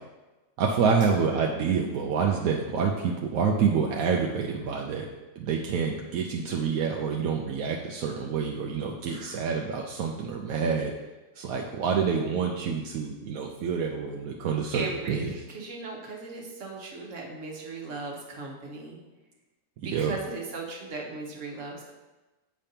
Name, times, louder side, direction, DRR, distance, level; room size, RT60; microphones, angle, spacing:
voice 1, 0.6-5.1 5.4-10.9 11.4-15.3 19.8-20.2, right 6 dB, 80° right, 0 dB, 1.0 m, -27 dB
voice 2, 9.1-9.5 14.7-19.0 19.8-21.9, right 3 dB, 60° right, -1 dB, 1.4 m, -37 dB
8.9 x 5.1 x 2.8 m, 1.1 s
omnidirectional pair, 1.5 m